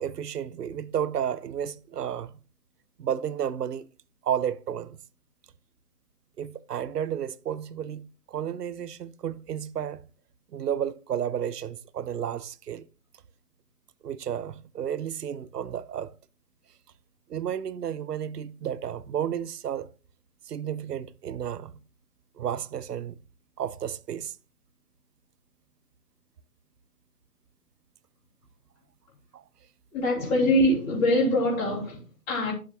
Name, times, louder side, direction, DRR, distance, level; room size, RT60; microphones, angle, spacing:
voice 1, 0.0-2.3 3.0-3.9 4.2-5.0 6.4-8.0 8.3-10.0 10.5-12.9 14.0-16.1 17.3-19.9 20.5-21.7 22.4-23.2 23.6-24.3 29.3-29.4, right 9 dB, 85° right, 0.7 m, -32 dB
voice 2, 29.9-32.5, left 1 dB, 20° left, 3.2 m, -24 dB
10.0 x 7.3 x 2.9 m
hypercardioid pair, 150°, 46 cm